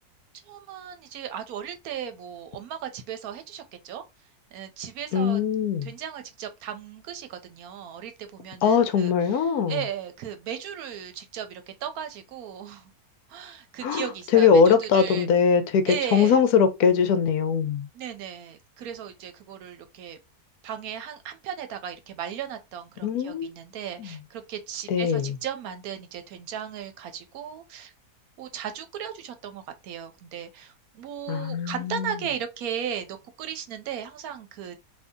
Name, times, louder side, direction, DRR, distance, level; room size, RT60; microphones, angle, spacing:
voice 1, 0.4-4.0 4.5-5.4 5.8-12.9 13.3-15.3 15.9-16.4 17.9-20.2 20.6-27.9 28.4-34.8, right 9 dB, 70° right, 1.0 m, -36 dB
voice 2, 5.1-5.9 8.6-9.8 13.8-14.0 14.3-17.9 23.0-23.5 24.0-24.2 24.9-25.3 31.3-32.1, left 6 dB, 75° left, 1.0 m, -21 dB
2.7 x 2.6 x 3.5 m
omnidirectional pair, 1.7 m